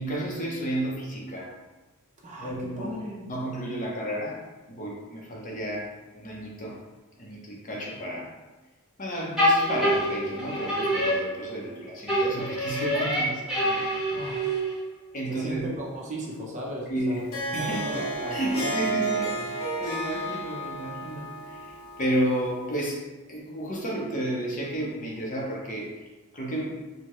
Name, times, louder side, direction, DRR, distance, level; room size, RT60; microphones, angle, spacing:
voice 1, 0.0-1.5 2.4-2.9 3.3-4.4 4.7-6.8 7.2-8.3 9.0-13.8 15.1-15.8 16.9-17.2 17.5-17.9 18.3-25.9 26.3-26.8, right 1 dB, 40° left, -3 dB, 0.7 m, -32 dB
voice 2, 2.2-3.3 14.1-14.6 15.3-17.2 17.6-18.7 19.3-19.5, right 1 dB, 35° right, -3 dB, 0.7 m, -37 dB
sound 1, 9.4-11.7 12.1-14.9, equal, 5° right, 1.0 m, -26 dB
Harp, 17.1-22.6, right 2 dB, 90° left, 0.7 m, -32 dB
4.5 x 2.1 x 3.0 m, 1.2 s
head